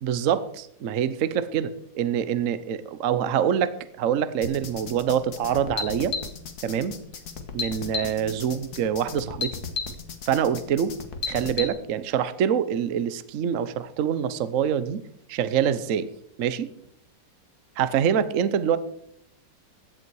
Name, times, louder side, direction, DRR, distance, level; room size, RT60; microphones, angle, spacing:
voice 1, 0.0-6.2 6.6-7.0 7.5-9.5 10.3-10.9 11.3-15.0 15.3-16.1 16.4-16.7 17.8-18.8, right 8 dB, 55° right, 13 dB, 1.0 m, -25 dB
sound 1, 4.4-11.7, left 5 dB, 55° left, 1.8 m, -34 dB
17.0 x 11.0 x 4.7 m, 0.70 s
omnidirectional pair, 2.0 m